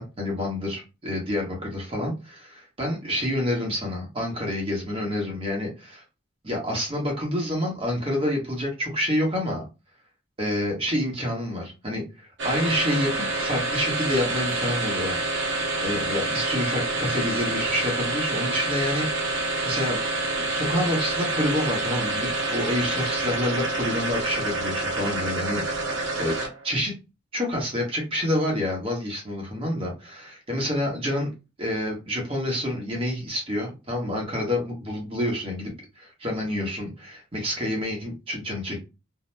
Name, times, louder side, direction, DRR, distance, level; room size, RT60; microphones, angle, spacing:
voice 1, 0.0-6.0 6.4-9.6 10.4-15.2 15.8-20.0 20.4-26.3 26.6-26.9 27.3-31.3 31.6-38.8, left 1 dB, 30° right, -1 dB, 1.0 m, -28 dB
sound 1, 12.4-26.7, right 2 dB, 65° right, 0.8 m, -27 dB
2.7 x 2.1 x 3.2 m, 0.28 s
head